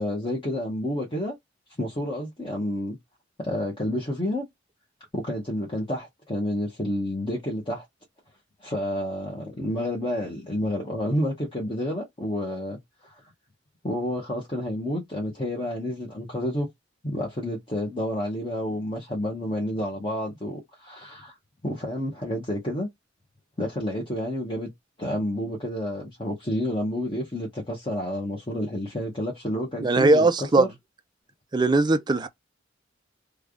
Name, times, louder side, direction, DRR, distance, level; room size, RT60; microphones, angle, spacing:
voice 1, 0.0-1.4 1.8-3.0 3.4-4.5 5.1-7.8 8.6-13.1 13.8-16.7 17.0-21.3 21.6-22.9 23.6-24.7 25.0-30.7, left 1 dB, 25° left, 0.9 m, -29 dB
voice 2, 29.8-30.7 31.5-32.3, right 2 dB, 20° right, 0.4 m, -20 dB
3.3 x 2.3 x 3.7 m
head